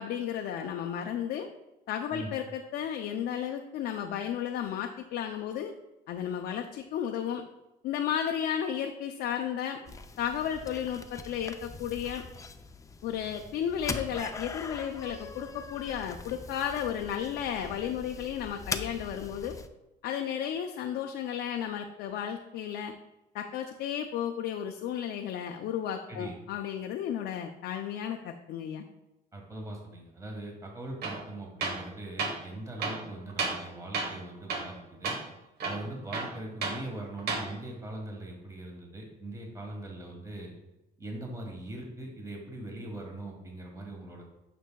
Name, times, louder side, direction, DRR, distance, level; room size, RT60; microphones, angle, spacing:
voice 1, 0.0-1.5 1.9-5.7 6.1-7.4 7.8-9.8 10.2-12.2 13.0-19.6 20.0-22.9 23.3-28.8, left 9 dB, 75° left, 3 dB, 0.5 m, -33 dB
sound 1, 9.9-19.7, left 4 dB, 20° left, 0.4 m, -42 dB
voice 2, 29.3-35.1 35.6-40.5 41.0-44.2, right 1 dB, 20° right, 1 dB, 1.5 m, -41 dB
Tools, 31.0-31.2 31.6-31.9 32.2-32.4 32.8-33.7 33.9-34.2 34.5-34.8 35.0-35.2 35.6-36.8 37.2-37.5, right 4 dB, 70° right, 1.2 m, -32 dB
9.1 x 6.1 x 2.3 m, 0.94 s
cardioid pair, 110°, 17 cm